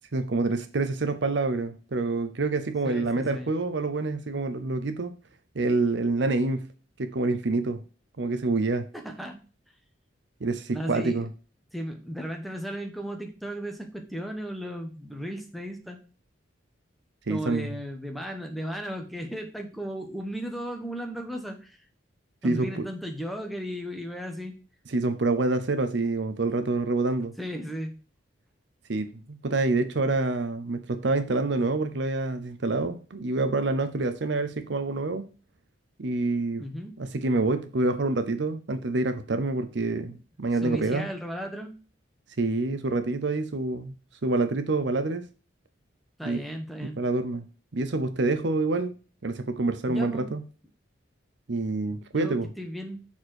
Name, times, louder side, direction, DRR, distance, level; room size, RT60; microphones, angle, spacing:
voice 1, 0.1-5.1 5.5-6.7 7.0-7.8 8.2-8.9 10.4-11.3 17.3-17.8 22.4-22.9 24.9-27.3 28.9-35.3 36.0-36.6 37.0-41.1 42.4-43.9 44.2-45.2 46.2-46.4 46.8-47.4 47.7-48.9 49.2-50.4 51.5-52.5, right 3 dB, 65° right, 0.7 m, -27 dB
voice 2, 2.8-3.5 8.9-9.4 10.7-11.2 11.7-16.0 17.3-21.8 22.4-24.6 27.4-27.9 36.6-36.9 40.6-41.7 46.2-47.0 49.9-50.3 52.1-53.1, equal, ahead, 1.1 m, -35 dB
7.1 x 4.3 x 6.3 m
head